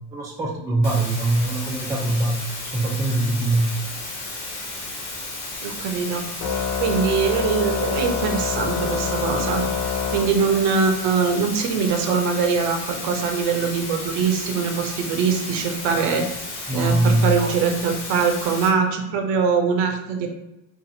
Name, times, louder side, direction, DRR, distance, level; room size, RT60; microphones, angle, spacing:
voice 1, 0.1-2.4 2.7-3.8 16.7-17.3, right 2 dB, 10° right, -1 dB, 0.4 m, -22 dB
sound 1, 0.8-18.7, left 2 dB, 75° left, 1.0 m, -33 dB
voice 2, 5.6-6.3 6.8-9.6 10.1-16.3 16.7-20.3, right 5 dB, 60° right, 5 dB, 0.6 m, -22 dB
Organ, 6.4-10.9, left 6 dB, 60° left, 0.6 m, -26 dB
2.5 x 2.4 x 2.6 m, 0.94 s
hypercardioid pair, 80°, 47 cm